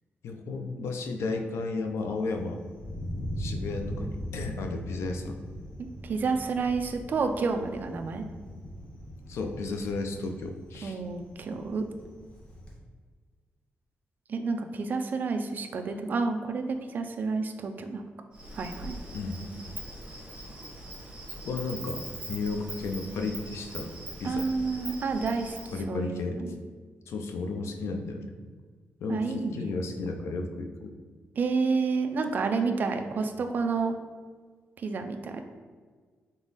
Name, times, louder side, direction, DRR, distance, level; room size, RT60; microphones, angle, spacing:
voice 1, 0.2-2.6 3.4-5.4 9.3-11.0 19.1-19.4 21.4-22.0 22.3-23.9 24.2-24.5 25.7-26.4 27.1-28.3 29.0-30.9, left 3 dB, 90° left, 5 dB, 0.5 m, -33 dB
Thunder, 2.1-12.8, equal, 25° left, 0.8 m, -40 dB
voice 2, 5.8-8.2 10.8-11.8 14.3-18.0 18.5-19.0 24.2-25.6 25.9-26.6 29.1-29.7 31.4-33.9 34.8-35.4, right 4 dB, 45° right, 6 dB, 0.4 m, -30 dB
Insect, 18.3-25.7, right 1 dB, 20° right, 1.0 m, -42 dB
3.8 x 3.5 x 4.0 m, 1.6 s
wide cardioid pair, 160°, 4 cm